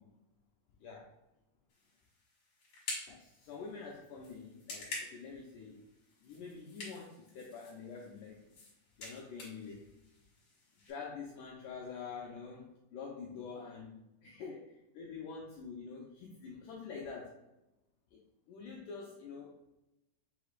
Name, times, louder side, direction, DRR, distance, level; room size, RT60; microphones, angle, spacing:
voice 1, 0.8-1.1 3.1-5.9 6.2-8.4 9.0-9.9 10.8-17.4 18.1-18.2 18.5-19.6, left 5 dB, 90° left, -2 dB, 1.8 m, -46 dB
sound 1, 1.7-10.9, left 2 dB, 50° left, 1.8 m, -49 dB
6.6 x 3.1 x 2.4 m, 0.93 s
omnidirectional pair, 4.4 m